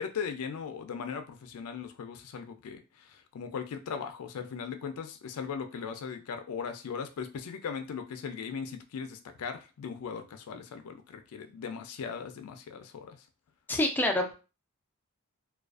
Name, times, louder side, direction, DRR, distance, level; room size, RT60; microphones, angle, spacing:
voice 1, 0.0-13.2, left 6 dB, 90° left, 7 dB, 0.4 m, -38 dB
voice 2, 13.7-14.3, left 1 dB, 10° left, 3 dB, 0.4 m, -26 dB
2.4 x 2.3 x 2.3 m, 0.32 s
head